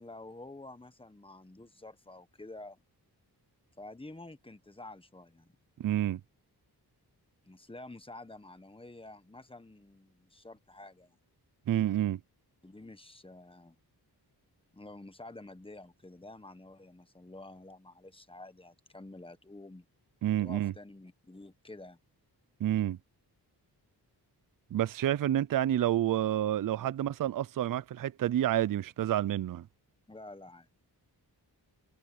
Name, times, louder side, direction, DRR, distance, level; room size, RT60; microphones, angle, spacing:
voice 1, 0.0-2.8 3.8-5.5 7.4-11.2 12.6-13.8 14.7-19.9 20.4-22.0 30.1-30.7, left 2 dB, 15° left, 1.4 m, -49 dB
voice 2, 5.8-6.2 11.7-12.2 20.2-20.7 22.6-23.0 24.7-29.7, right 12 dB, 55° right, 0.5 m, -29 dB
wide cardioid pair, 95°, 40 cm